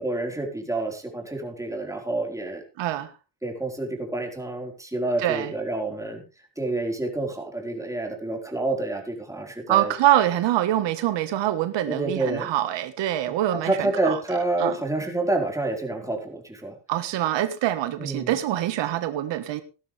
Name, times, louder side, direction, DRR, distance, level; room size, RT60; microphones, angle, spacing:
voice 1, 0.0-2.6 3.4-6.2 6.6-9.9 11.9-12.5 13.7-16.8 18.0-18.3, right 2 dB, 5° right, 2 dB, 4.7 m, -28 dB
voice 2, 2.8-3.1 5.2-5.5 9.7-14.2 14.6-14.8 16.9-19.6, right 13 dB, 85° right, 11 dB, 1.5 m, -24 dB
17.5 x 12.0 x 3.4 m, 0.31 s
cardioid pair, 115°, 42 cm